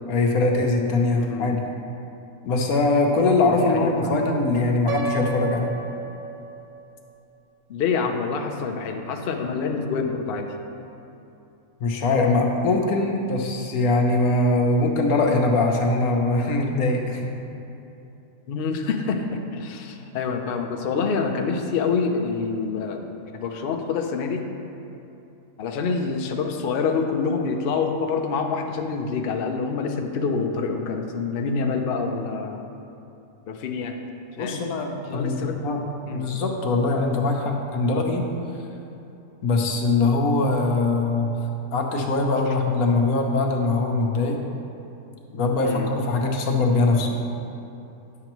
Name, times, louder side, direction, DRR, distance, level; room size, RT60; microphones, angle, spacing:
voice 1, 0.1-1.6 2.4-5.7 11.8-17.2 34.4-35.9 36.1-38.3 39.4-41.3 41.7-44.4 45.3-47.2, left 2 dB, 80° left, 2 dB, 1.2 m, -22 dB
voice 2, 1.2-1.6 3.5-4.1 7.7-10.5 18.5-23.0 23.4-24.4 25.6-32.7 33.5-34.0 34.4-34.7 35.1-35.6 36.1-36.3 45.6-45.9, left 5 dB, 60° left, 3 dB, 0.6 m, -26 dB
Piano, 4.9-6.8, right 2 dB, 85° right, 1.2 m, -31 dB
9.6 x 6.6 x 3.0 m, 2.9 s
omnidirectional pair, 1.5 m